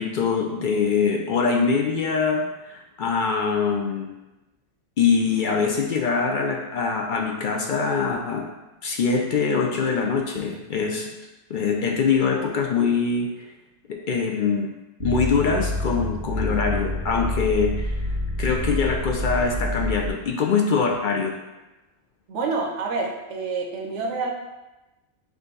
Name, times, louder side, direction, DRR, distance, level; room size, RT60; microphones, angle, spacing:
voice 1, 0.0-4.1 5.0-8.5 8.8-11.1 11.5-13.3 13.9-14.7 15.0-18.0 18.4-21.4, left 5 dB, 60° left, 1 dB, 0.5 m, -23 dB
sound 1, 15.0-20.1, left 1 dB, 55° right, 0.7 m, -27 dB
voice 2, 22.3-24.3, right 4 dB, 85° right, 1 dB, 1.0 m, -27 dB
4.9 x 2.6 x 3.8 m, 1.0 s
omnidirectional pair, 1.2 m